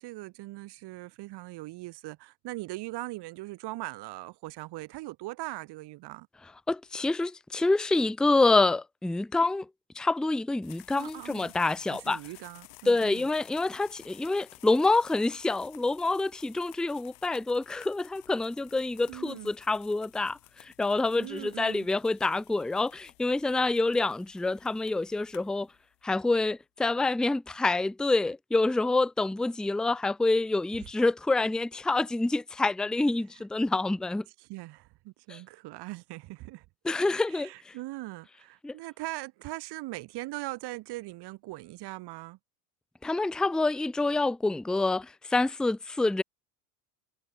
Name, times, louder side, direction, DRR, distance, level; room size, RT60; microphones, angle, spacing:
voice 1, 0.0-6.3 10.9-11.5 11.9-13.3 19.1-19.5 21.2-21.9 34.4-36.6 37.3-42.4, right 19 dB, 60° right, 4.2 m, -40 dB
voice 2, 6.7-9.7 10.0-12.2 12.9-25.7 26.0-34.2 35.3-35.4 36.8-37.7 38.6-38.7 43.0-46.2, left 2 dB, ahead, 0.5 m, -27 dB
sound 1, 10.6-26.1, left 27 dB, 70° left, 6.0 m, -55 dB
hypercardioid pair, 85°, 44 cm